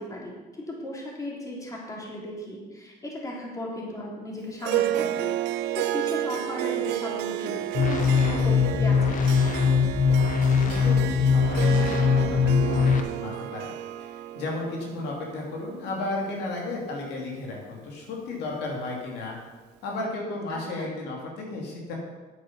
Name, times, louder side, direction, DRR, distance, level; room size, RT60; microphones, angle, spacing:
voice 1, 0.0-9.2 20.5-20.9, left 1 dB, 20° left, -3 dB, 3.3 m, -36 dB
Harp, 4.6-17.2, right 13 dB, 80° right, 0.5 m, -31 dB
sound 1, 7.7-13.0, left 5 dB, 50° left, 1.2 m, -21 dB
voice 2, 10.5-13.7 14.0-19.4 19.8-21.9, left 2 dB, 80° left, -2 dB, 2.8 m, -34 dB
9.9 x 8.9 x 5.6 m, 1.3 s
cardioid pair, 110°, 17 cm